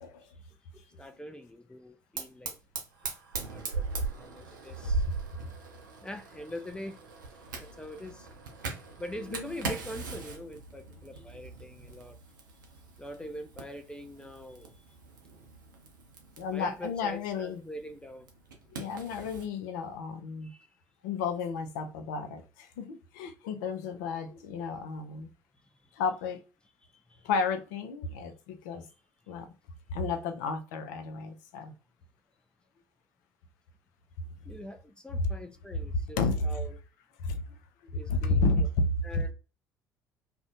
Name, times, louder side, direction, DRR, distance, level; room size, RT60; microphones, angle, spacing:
voice 1, 0.7-2.6 3.4-5.0 6.0-7.0 7.6-8.3 9.0-12.2 13.0-14.7 16.5-18.3 20.4-20.6 34.5-36.8 37.9-38.7 39.0-39.3, equal, 10° left, 0.4 m, -43 dB
Fire, 2.2-19.5, right 4 dB, 75° right, 0.5 m, -40 dB
voice 2, 16.4-17.6 18.7-20.5 21.0-25.3 26.0-26.4 27.2-28.8 29.3-29.5 29.9-31.7 36.2-36.4 37.2-37.4 37.8-38.8, left 4 dB, 65° left, 0.4 m, -32 dB
2.5 x 2.1 x 2.6 m
figure-of-eight pair, 55°, 10 cm